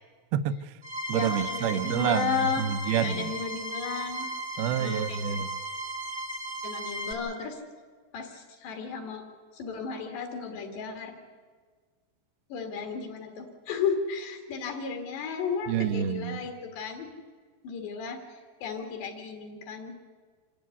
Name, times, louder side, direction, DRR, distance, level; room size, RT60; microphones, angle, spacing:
voice 1, 0.3-0.7 1.1-3.3 4.6-5.5 15.7-16.4, right 9 dB, 75° right, 12 dB, 2.3 m, -28 dB
sound 1, 0.8-7.1, right 1 dB, 55° right, 0.7 m, -35 dB
voice 2, 1.1-2.6 3.0-4.3 4.8-5.2 6.6-7.6 8.1-9.3 9.5-11.2 12.5-17.1 17.6-19.9, left 6 dB, 70° left, 4 dB, 4.2 m, -34 dB
27.0 x 13.5 x 9.5 m, 1.5 s
omnidirectional pair, 5.2 m